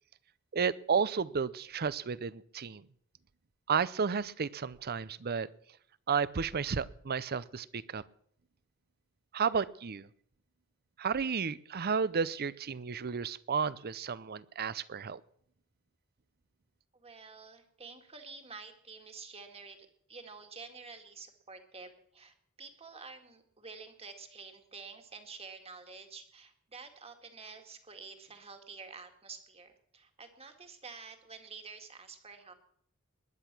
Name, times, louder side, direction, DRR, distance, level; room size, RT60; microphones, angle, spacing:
voice 1, 0.5-2.8 3.7-5.5 6.1-8.0 9.3-10.1 11.0-15.2, right 6 dB, 45° right, 19 dB, 0.6 m, -32 dB
voice 2, 16.9-19.8 20.1-32.5, right 4 dB, 30° right, 6 dB, 2.0 m, -49 dB
20.5 x 10.5 x 6.1 m, 0.66 s
head